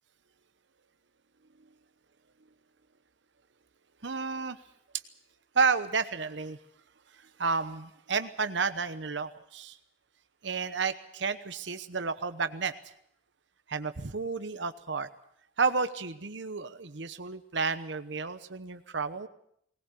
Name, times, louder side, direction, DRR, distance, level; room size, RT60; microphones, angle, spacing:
voice 1, 4.0-4.6 5.5-6.6 7.4-9.8 10.4-12.7 13.7-15.1 15.6-19.3, right 5 dB, 70° right, 11 dB, 1.0 m, -31 dB
20.0 x 19.0 x 8.3 m, 0.68 s
head